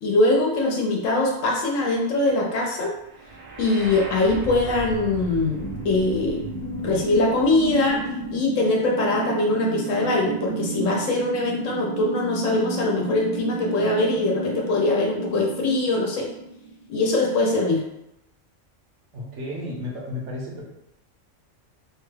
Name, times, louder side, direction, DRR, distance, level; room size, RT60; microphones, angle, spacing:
voice 1, 0.0-2.9 3.6-6.4 6.8-8.0 8.3-16.3 16.9-17.8, left 2 dB, 80° left, -1 dB, 1.0 m, -22 dB
sound 1, 3.1-17.1, right 4 dB, 50° right, 0.5 m, -33 dB
sound 2, 5.6-11.2, left 3 dB, 55° left, 0.5 m, -38 dB
voice 2, 19.1-20.6, left 1 dB, 70° right, -3 dB, 1.1 m, -33 dB
3.1 x 2.3 x 3.1 m, 0.85 s
omnidirectional pair, 1.3 m